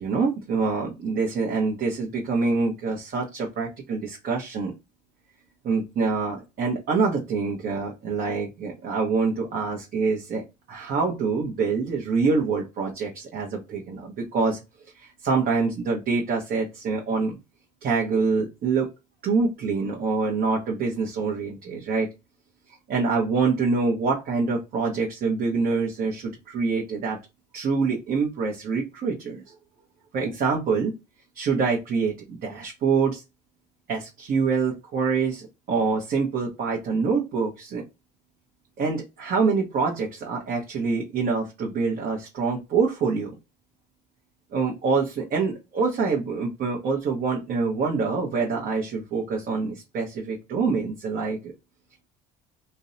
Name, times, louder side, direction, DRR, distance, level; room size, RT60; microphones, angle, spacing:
voice 1, 0.0-4.7 5.6-14.6 15.0-17.4 17.8-18.9 19.2-22.1 22.9-27.2 27.5-29.5 30.1-30.9 31.3-33.2 33.9-37.8 38.8-43.4 44.5-51.4, right 4 dB, 50° right, -1 dB, 0.8 m, -25 dB
2.6 x 2.0 x 2.5 m, 0.25 s
supercardioid pair, 90°, 21 cm